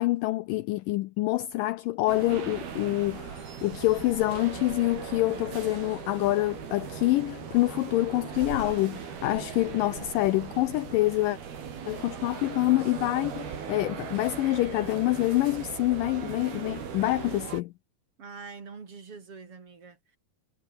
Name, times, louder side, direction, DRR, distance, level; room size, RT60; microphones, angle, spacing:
voice 1, 0.0-11.4 11.9-17.7, left 18 dB, 80° left, 2.1 m, -26 dB
sound 1, 2.1-17.6, right 7 dB, 80° right, 5.8 m, -39 dB
voice 2, 18.2-20.2, right 5 dB, 40° right, 3.7 m, -44 dB
omnidirectional pair, 4.3 m